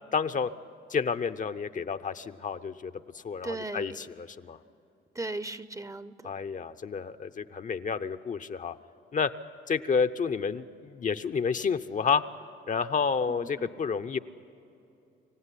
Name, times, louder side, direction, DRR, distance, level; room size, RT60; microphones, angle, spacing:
voice 1, 0.1-0.5 0.9-4.6 6.2-8.8 9.1-9.3 9.7-12.2 12.7-14.2, left 6 dB, 40° left, 9 dB, 0.7 m, -30 dB
voice 2, 3.4-4.0 5.1-6.3 13.3-13.7, right 2 dB, 15° right, 15 dB, 0.7 m, -37 dB
25.5 x 15.5 x 9.9 m, 2.8 s
cardioid pair, 90°, 20 cm